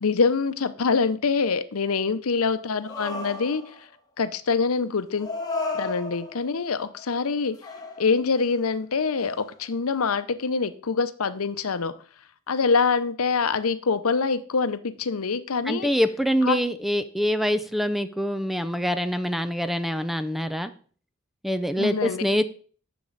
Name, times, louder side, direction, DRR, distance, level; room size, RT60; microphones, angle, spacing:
voice 1, 0.0-3.6 4.2-5.3 5.7-7.6 8.0-11.9 12.5-15.9 16.4-16.6 21.8-22.2, left 5 dB, 85° left, 12 dB, 0.7 m, -25 dB
sound 1, 2.8-3.9 5.2-6.5 7.0-7.4 7.6-8.5 9.2-9.3, left 2 dB, 20° left, 1.7 m, -33 dB
voice 2, 15.7-20.7 21.4-22.4, equal, ahead, 11 dB, 0.4 m, -25 dB
10.5 x 6.9 x 4.0 m, 0.43 s
head